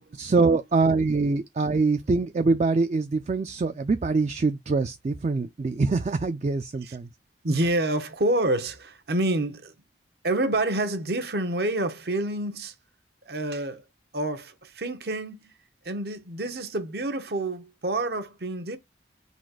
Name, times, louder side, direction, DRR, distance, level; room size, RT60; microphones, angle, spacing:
voice 1, 0.2-7.1, right 3 dB, 40° right, 0.3 m, -24 dB
voice 2, 7.4-9.7 10.2-12.7 13.2-13.8 14.1-15.5 15.8-18.8, right 1 dB, 65° right, 0.9 m, -28 dB
4.1 x 2.4 x 4.6 m
head